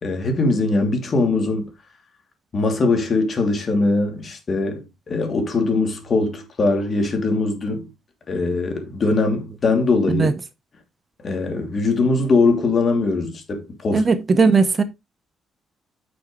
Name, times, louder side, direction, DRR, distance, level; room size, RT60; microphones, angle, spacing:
voice 1, 0.0-1.7 2.5-7.9 8.3-10.3 11.2-14.1, left 3 dB, 45° left, 2.8 m, -21 dB
voice 2, 13.9-14.8, right 4 dB, 35° right, 1.0 m, -17 dB
8.9 x 6.4 x 3.2 m
cardioid pair, 90°, 0 cm